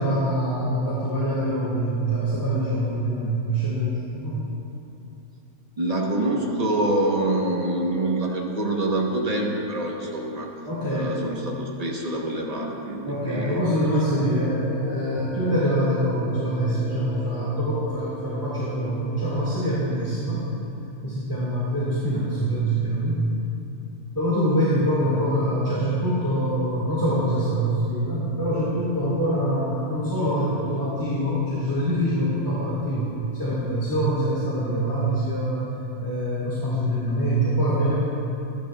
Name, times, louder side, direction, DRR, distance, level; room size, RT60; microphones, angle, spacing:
voice 1, 0.0-4.4 10.7-11.2 13.1-20.4 21.0-23.3 24.1-33.1 33.4-35.7 36.0-37.9, right 1 dB, 15° left, -11 dB, 1.8 m, -24 dB
voice 2, 5.8-10.5 10.9-13.9, right 1 dB, 30° right, -1 dB, 1.0 m, -26 dB
Brass instrument, 14.1-19.7, left 7 dB, 70° left, 0.9 m, -38 dB
13.5 x 10.5 x 2.3 m, 2.8 s
omnidirectional pair, 1.5 m